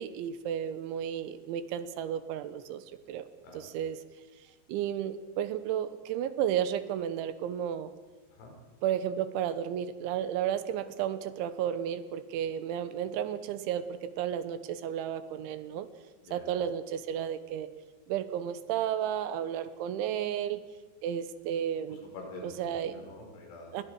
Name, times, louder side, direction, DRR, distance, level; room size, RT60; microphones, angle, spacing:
voice 1, 0.0-3.3 3.5-4.0 4.7-7.9 8.8-15.9 16.3-17.7 18.1-20.6 21.0-22.0 22.4-23.0 23.7-23.8, right 10 dB, 80° right, 11 dB, 3.3 m, -33 dB
voice 2, 21.9-22.5 22.8-23.8, left 3 dB, 90° left, 1 dB, 7.2 m, -46 dB
29.0 x 21.5 x 4.7 m, 1.3 s
omnidirectional pair, 5.5 m